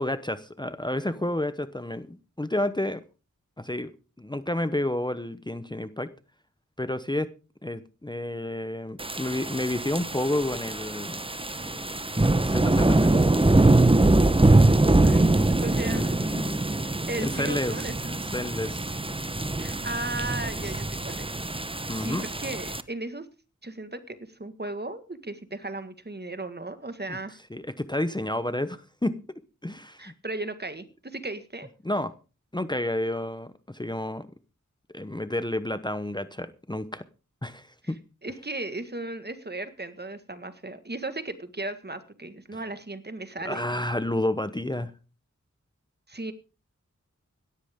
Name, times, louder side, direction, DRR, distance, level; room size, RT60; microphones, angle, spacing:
voice 1, 0.0-3.0 3.6-3.9 4.2-6.1 6.8-7.3 7.6-11.2 11.7-13.2 15.8-16.6 17.2-17.7 18.1-18.8 21.9-22.2 27.1-27.2 27.5-29.2 29.6-30.1 31.8-32.1 32.5-34.3 34.9-37.0 37.4-38.0 43.4-44.9, left 1 dB, 15° left, 12 dB, 0.9 m, -30 dB
sound 1, 9.0-22.8, right 2 dB, 20° right, 0.9 m, -23 dB
voice 2, 15.0-16.2 17.1-18.1 19.6-21.4 21.9-23.3 23.6-27.4 30.0-31.7 37.8-37.9 38.2-43.6 46.1-46.3, right 2 dB, 35° right, 11 dB, 1.7 m, -36 dB
17.0 x 13.5 x 3.7 m, 0.34 s
wide cardioid pair, 60°, 30 cm